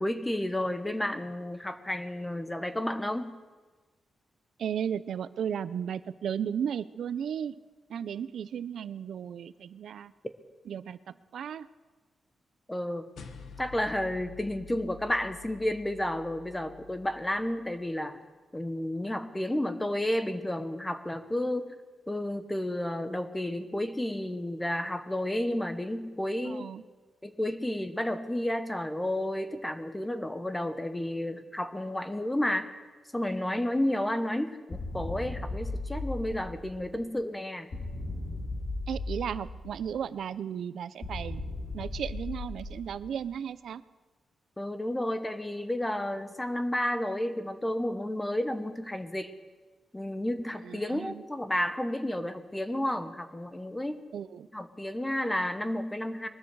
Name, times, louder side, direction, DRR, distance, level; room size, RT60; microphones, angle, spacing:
voice 1, 0.0-3.4 12.7-13.1 13.6-18.2 18.5-21.8 22.1-26.7 27.2-32.7 33.1-37.7 44.6-49.3 49.9-54.0 54.5-56.3, left 1 dB, 10° left, 9 dB, 1.0 m, -31 dB
voice 2, 4.6-7.6 7.9-10.1 10.7-11.7 26.4-26.8 38.9-41.4 41.7-43.8 50.6-51.2 54.1-54.5, right 8 dB, 80° right, 15 dB, 0.6 m, -35 dB
sound 1, 13.2-17.8, left 6 dB, 80° left, 1.4 m, -49 dB
sound 2, 34.7-37.0 37.7-40.0 41.0-43.3, left 2 dB, 45° left, 4.3 m, -37 dB
22.0 x 13.5 x 4.8 m, 1.3 s
cardioid pair, 110°, 0 cm